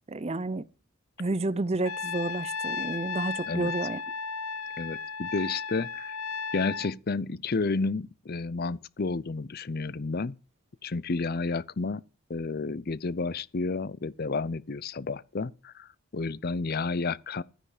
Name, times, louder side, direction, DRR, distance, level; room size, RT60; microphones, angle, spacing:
voice 1, 0.1-0.7 1.2-4.0, right 2 dB, 30° right, 0.5 m, -30 dB
Trumpet, 1.8-6.9, left 5 dB, 70° left, 0.8 m, -34 dB
voice 2, 4.8-6.2 6.5-10.3 10.8-12.0 12.3-17.4, left 3 dB, 45° left, 0.5 m, -31 dB
13.0 x 10.0 x 5.0 m
head